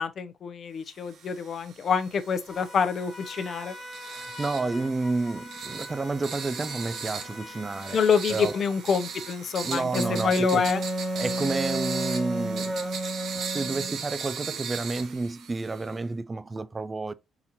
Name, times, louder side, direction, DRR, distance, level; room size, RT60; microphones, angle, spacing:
voice 1, 0.0-3.7 7.9-9.9 10.2-10.8, left 6 dB, 55° left, 0.6 m, -26 dB
sound 1, 1.1-16.0, right 6 dB, 70° right, 1.0 m, -38 dB
Trumpet, 2.5-8.9, left 1 dB, 15° left, 1.3 m, -44 dB
voice 2, 4.1-8.0 8.3-8.5 9.6-10.6 11.2-12.8 13.5-17.1, right 3 dB, 25° right, 0.3 m, -30 dB
Wind instrument woodwind instrument, 9.9-14.0, right 1 dB, 10° right, 1.1 m, -31 dB
4.2 x 3.9 x 2.8 m
cardioid pair, 90°, 0 cm